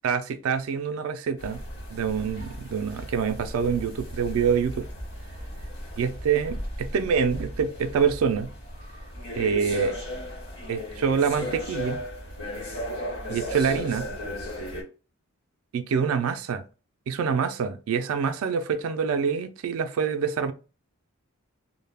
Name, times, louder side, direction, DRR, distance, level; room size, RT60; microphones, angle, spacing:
voice 1, 0.0-1.6 1.9-4.9 6.0-8.5 9.4-10.0 10.7-12.0 13.3-14.1 15.7-16.6 17.1-20.5, right 6 dB, 65° right, 0.3 m, -26 dB
sound 1, 1.4-14.8, equal, 50° left, 1.0 m, -36 dB
2.2 x 2.0 x 3.3 m
head